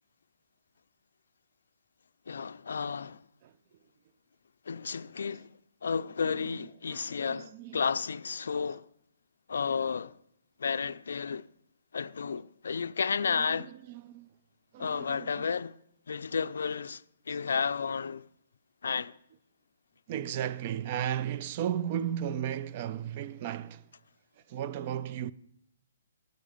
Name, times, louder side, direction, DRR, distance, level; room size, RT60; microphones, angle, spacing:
voice 1, 2.3-3.2 4.7-5.5 5.8-8.9 9.5-10.2 10.6-11.5 11.9-13.7 14.8-15.8 16.1-18.3 18.8-19.1, left 6 dB, 80° left, 0.3 m, -32 dB
voice 2, 6.3-7.8 13.3-14.3 14.7-15.5 17.3-17.4 20.1-23.9 24.5-25.3, right 10 dB, 35° right, 0.4 m, -35 dB
9.3 x 9.2 x 5.0 m
hypercardioid pair, 160°, 0 cm